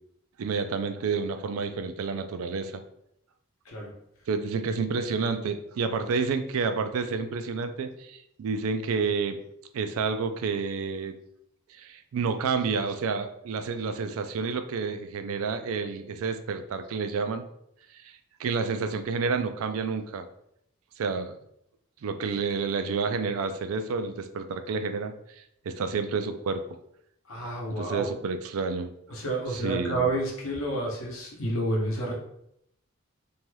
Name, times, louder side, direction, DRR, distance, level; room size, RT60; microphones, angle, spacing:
voice 1, 0.4-2.8 4.3-9.4 9.7-11.2 11.7-17.4 18.0-20.3 21.0-21.4 22.0-26.6 27.8-28.9 29.5-30.0, right 5 dB, 90° right, 8 dB, 0.4 m, -30 dB
voice 2, 27.3-28.1 29.1-32.1, right 1 dB, 80° left, -1 dB, 0.8 m, -29 dB
2.7 x 2.2 x 3.1 m, 0.75 s
head